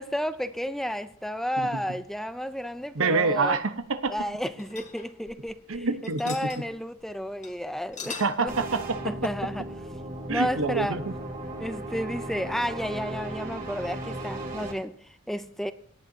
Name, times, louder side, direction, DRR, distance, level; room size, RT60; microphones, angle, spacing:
voice 1, 0.0-3.6 4.1-5.9 6.2-8.5 9.0-9.7 10.3-11.0 11.6-15.7, equal, ahead, 0.5 m, -32 dB
voice 2, 2.9-4.1 5.7-6.3 8.2-9.1 10.3-11.0, right 4 dB, 90° right, 1.0 m, -26 dB
sound 1, 3.8-5.8 6.0-6.6 7.0-7.1 7.4-7.5 7.8-8.5, left 6 dB, 35° left, 1.6 m, -41 dB
sound 2, 8.5-14.7, right 2 dB, 40° right, 3.2 m, -36 dB
17.5 x 10.5 x 2.8 m
head